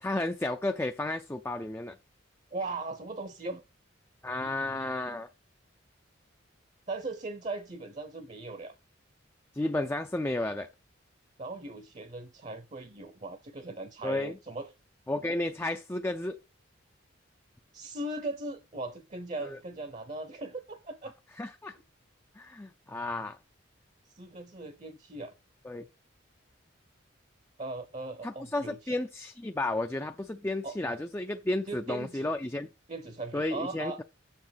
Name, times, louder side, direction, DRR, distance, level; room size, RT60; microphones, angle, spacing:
voice 1, 0.0-2.0 4.2-5.3 9.5-10.7 14.0-14.4 15.1-16.4 19.4-19.6 21.4-21.8 22.4-23.4 25.6-25.9 28.2-32.7 33.3-34.0, left 2 dB, 10° left, 0.5 m, -32 dB
voice 2, 2.5-3.6 4.4-4.5 6.9-8.7 11.4-14.7 17.7-21.1 22.9-23.1 24.1-25.3 27.6-28.8 30.6-30.7 31.7-32.3 32.9-34.0, right 2 dB, 35° right, 0.8 m, -39 dB
7.2 x 7.1 x 5.7 m
head